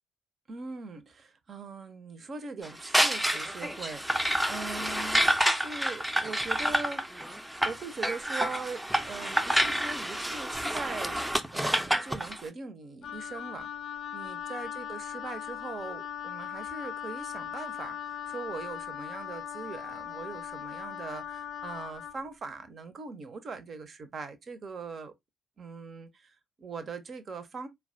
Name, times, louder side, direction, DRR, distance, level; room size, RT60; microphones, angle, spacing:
voice 1, 0.5-7.4 7.6-11.2 11.5-13.7 14.1-25.1 25.6-27.7, right 4 dB, 45° right, 0.7 m, -41 dB
sound 1, 2.6-12.4, equal, 5° right, 0.6 m, -28 dB
Wind instrument woodwind instrument, 13.0-22.2, left 9 dB, 50° left, 0.4 m, -39 dB
4.5 x 2.2 x 2.6 m
figure-of-eight pair, 40°, 0 cm